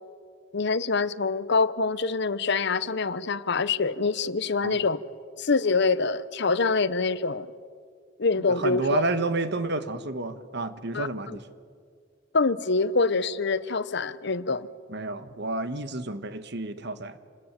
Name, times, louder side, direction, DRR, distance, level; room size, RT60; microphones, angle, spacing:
voice 1, 0.5-5.0 5.4-7.5 8.2-9.0 10.9-11.4 12.3-14.7, left 4 dB, 60° left, 16 dB, 0.9 m, -25 dB
voice 2, 8.5-11.4 14.9-17.2, right 2 dB, 60° right, 11 dB, 1.5 m, -30 dB
27.5 x 20.5 x 9.0 m, 2.1 s
head